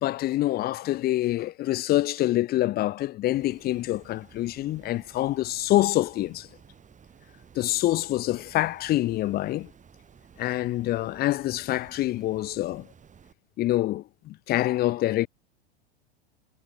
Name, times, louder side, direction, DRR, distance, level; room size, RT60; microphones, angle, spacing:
voice 1, 0.0-6.5 7.6-9.7 10.4-12.9 13.6-15.3, left 15 dB, 30° left, 0.6 m, -26 dB
Water, 3.3-13.3, right 7 dB, 25° right, 6.8 m, -54 dB
hypercardioid pair, 90°, 31 cm